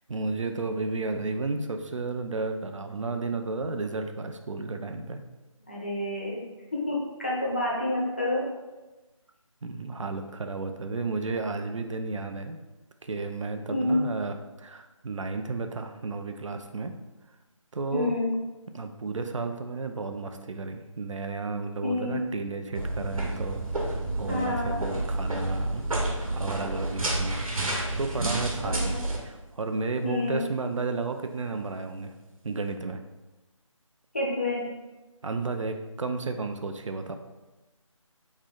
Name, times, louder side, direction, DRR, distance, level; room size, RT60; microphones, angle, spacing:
voice 1, 0.1-5.2 9.6-12.6 13.0-16.9 17.7-18.1 18.7-25.8 26.3-29.0 29.2-32.1 32.4-33.0 35.2-37.1, right 3 dB, 65° right, 6 dB, 0.5 m, -33 dB
voice 2, 5.7-8.5 13.7-14.1 17.9-18.4 21.8-22.3 24.3-24.8 28.6-29.0 30.0-30.4 34.1-34.7, left 2 dB, 20° left, -5 dB, 0.6 m, -29 dB
sound 1, 22.7-29.2, right 2 dB, 90° right, 1.1 m, -30 dB
3.7 x 3.2 x 3.8 m, 1.1 s
figure-of-eight pair, 175°, 17 cm